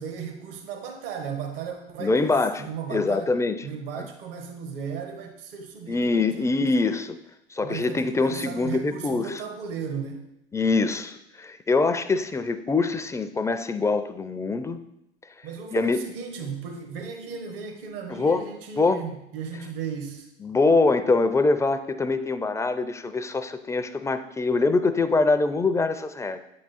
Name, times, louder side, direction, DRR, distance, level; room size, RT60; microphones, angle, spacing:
voice 1, 0.0-3.3 3.6-6.7 7.6-10.2 15.4-20.3, right 6 dB, 70° right, 5 dB, 1.0 m, -36 dB
voice 2, 2.0-3.5 4.0-4.1 5.9-7.1 7.5-9.4 10.5-14.8 15.7-16.0 18.1-18.4 18.8-19.0 20.4-26.4, left 3 dB, 10° left, 10 dB, 0.4 m, -24 dB
8.5 x 3.8 x 4.1 m, 0.82 s
figure-of-eight pair, 65°, 30 cm